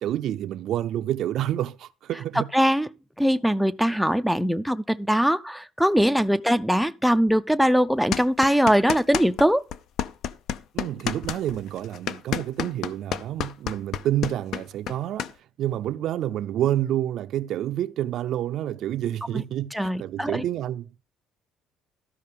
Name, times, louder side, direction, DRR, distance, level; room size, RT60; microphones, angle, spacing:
voice 1, 0.0-2.5 10.7-21.0, right 12 dB, 60° right, 0.5 m, -28 dB
voice 2, 2.5-2.9 3.2-9.6 19.3-19.4 19.7-20.4, equal, ahead, 0.4 m, -21 dB
sound 1, 8.1-9.5 9.7-15.3, left 9 dB, 60° left, 0.6 m, -29 dB
12.5 x 5.1 x 5.4 m
cardioid pair, 135°, 0 cm